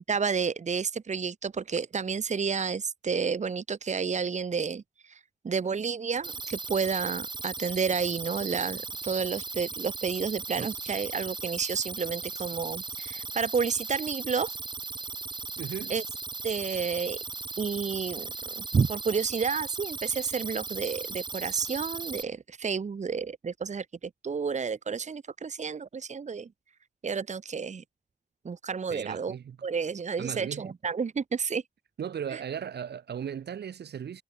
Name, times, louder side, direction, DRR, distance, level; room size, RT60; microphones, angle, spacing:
voice 1, 0.0-14.5 15.9-16.0 16.4-17.2 17.6-26.5 27.0-27.8 28.4-29.3 29.6-31.6 32.3-32.4, right 5 dB, 45° right, 1.3 m, -30 dB
sound 1, 6.2-22.2, right 4 dB, 25° right, 0.7 m, -37 dB
voice 2, 15.6-15.9 28.9-29.6 30.2-30.7 32.0-34.2, right 8 dB, 80° right, 1.9 m, -36 dB
cardioid pair, 90°, 17 cm